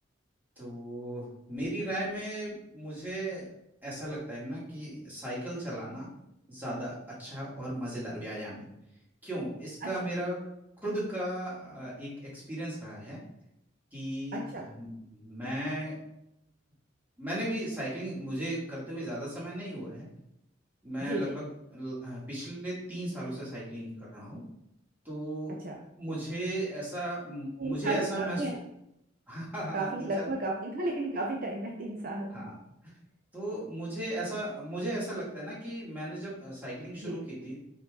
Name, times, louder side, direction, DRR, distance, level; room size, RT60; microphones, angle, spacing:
voice 1, 0.6-3.5 3.8-6.1 6.5-6.9 7.2-8.7 9.2-10.4 10.8-13.2 13.9-14.4 14.7-15.9 17.2-20.1 20.8-24.4 25.0-25.6 26.0-28.4 29.3-30.3 32.3-32.6 33.3-37.6, right 1 dB, 10° right, -7 dB, 2.5 m, -36 dB
voice 2, 14.3-14.6 21.0-21.3 25.6-25.8 27.6-28.6 29.7-32.4 37.0-37.2, right 2 dB, 45° right, 0 dB, 0.7 m, -33 dB
5.5 x 4.9 x 3.8 m, 0.81 s
head